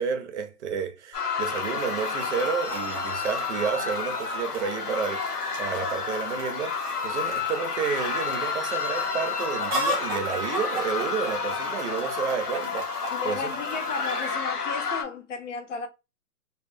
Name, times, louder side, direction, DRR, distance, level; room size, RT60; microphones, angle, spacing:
voice 1, 0.0-13.5, right 6 dB, 50° right, 0.6 m, -31 dB
sound 1, 1.1-15.0, left 5 dB, 85° left, 1.0 m, -30 dB
Chicken rooster, 1.4-14.3, right 1 dB, 15° right, 0.8 m, -38 dB
voice 2, 13.1-15.9, left 5 dB, 55° left, 0.7 m, -34 dB
2.3 x 2.1 x 3.4 m
hypercardioid pair, 145°, 45 cm